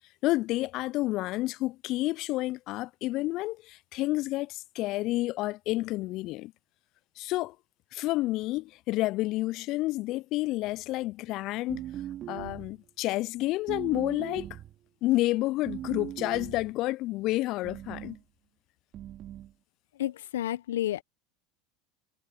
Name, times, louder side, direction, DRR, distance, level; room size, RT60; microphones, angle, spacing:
voice 1, 0.2-6.5 7.2-7.5 7.9-11.8 12.3-14.5 15.0-18.2, left 18 dB, 55° left, 0.4 m, -30 dB
sound 1, 11.7-12.8 13.7-14.8 15.7-16.8 17.6-18.2 18.9-19.5, right 12 dB, 45° right, 3.5 m, -39 dB
voice 2, 20.0-21.0, left 13 dB, 75° left, 1.1 m, -30 dB
hypercardioid pair, 75°, 0 cm